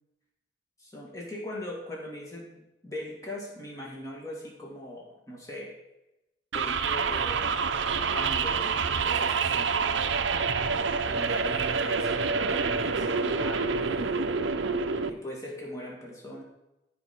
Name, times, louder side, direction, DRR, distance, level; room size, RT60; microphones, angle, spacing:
voice 1, 0.8-5.8 6.5-7.6 7.9-10.2 11.1-14.5 15.1-16.4, left 1 dB, 15° left, -2 dB, 2.3 m, -40 dB
sound 1, 6.5-15.1, right 5 dB, 75° right, 0.7 m, -27 dB
14.0 x 5.2 x 4.5 m, 0.92 s
head